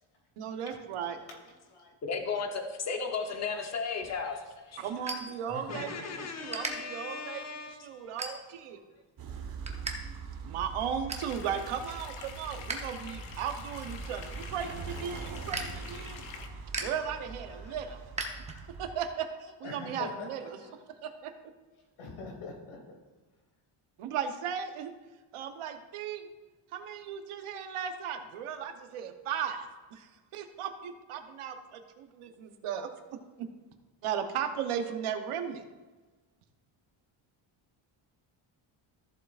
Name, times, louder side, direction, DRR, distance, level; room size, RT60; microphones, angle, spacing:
voice 1, 0.4-1.2 4.8-8.8 10.4-16.2 16.8-18.0 18.6-20.6 21.0-21.3 24.0-24.9 25.3-26.3 26.7-32.9 34.0-35.6, right 8 dB, 85° right, 6 dB, 1.0 m, -36 dB
voice 2, 1.2-1.9 2.9-3.3 3.7-5.2 5.5-6.0 6.6-8.8 9.7-9.9 11.9-12.3 12.6-13.3 13.6-13.8 14.0-14.2 14.5-15.7 16.0-16.6 17.4-18.4 19.6-20.7 22.0-22.8, left 4 dB, 85° left, -1 dB, 2.7 m, -49 dB
voice 3, 2.0-4.4 4.7-4.8 5.7-7.8, left 5 dB, 35° left, 4 dB, 0.9 m, -35 dB
sound 1, 3.9-6.0 6.3-6.7 7.3-7.5 8.0-8.7 9.1-10.0 10.2-10.3 10.7-11.3 11.8-12.8 13.1-18.9, right 2 dB, 15° right, 0.8 m, -40 dB
sound 2, 9.2-19.0, right 4 dB, 45° right, 1.2 m, -43 dB
sound 3, 11.1-16.5, left 6 dB, 65° left, 0.9 m, -47 dB
14.0 x 7.4 x 2.5 m, 1.2 s
cardioid pair, 170°, 49 cm